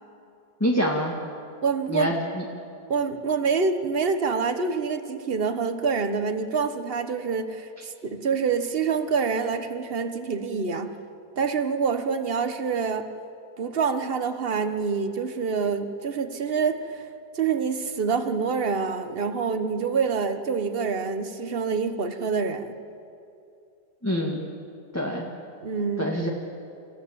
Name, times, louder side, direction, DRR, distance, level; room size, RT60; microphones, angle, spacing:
voice 1, 0.6-1.1 1.9-2.4 24.0-24.4 24.9-25.2 26.0-26.3, equal, 10° left, -1 dB, 1.7 m, -25 dB
voice 2, 1.6-2.1 2.9-11.0 11.4-13.1 13.6-17.1 17.3-22.8 25.6-26.1, right 5 dB, 35° right, 9 dB, 1.2 m, -26 dB
29.5 x 15.0 x 8.6 m, 2.6 s
omnidirectional pair, 1.9 m